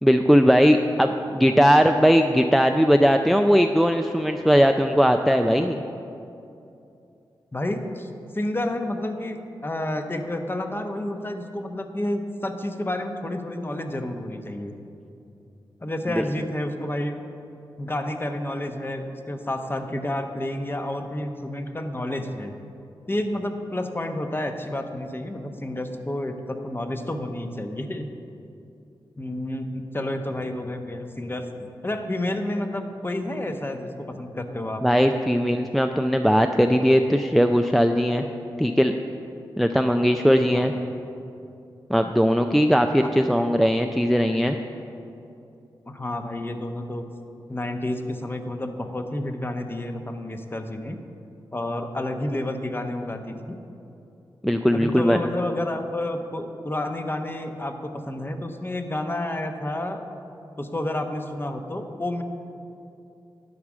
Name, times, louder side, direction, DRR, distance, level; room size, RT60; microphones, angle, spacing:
voice 1, 0.0-5.8 16.2-16.3 34.8-38.2 38.6-38.9 39.6-40.7 41.9-44.6 54.4-55.2, equal, ahead, 5 dB, 0.4 m, -19 dB
voice 2, 7.5-14.7 15.8-17.2 17.8-22.5 23.1-28.1 29.2-34.8 40.5-40.7 43.0-43.1 45.9-47.1 47.5-51.0 51.5-53.6 54.7-60.1 60.6-62.2, left 1 dB, 25° left, 6 dB, 0.9 m, -30 dB
11.0 x 4.8 x 7.3 m, 2.7 s
cardioid pair, 50°, 9 cm